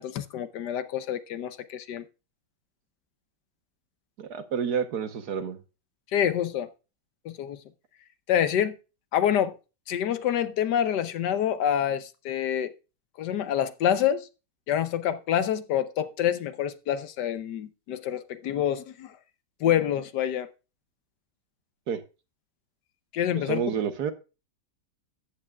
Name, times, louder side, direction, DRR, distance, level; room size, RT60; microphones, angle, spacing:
voice 1, 0.0-2.0 6.1-6.7 7.2-7.6 8.3-8.8 9.1-9.6 9.9-12.7 13.2-14.3 14.7-19.2 19.6-20.5 23.1-23.6, left 10 dB, 75° left, 1.3 m, -27 dB
voice 2, 4.2-5.6 21.9-22.0 23.5-24.1, right 7 dB, 65° right, 1.5 m, -29 dB
13.5 x 8.8 x 2.3 m
omnidirectional pair, 1.9 m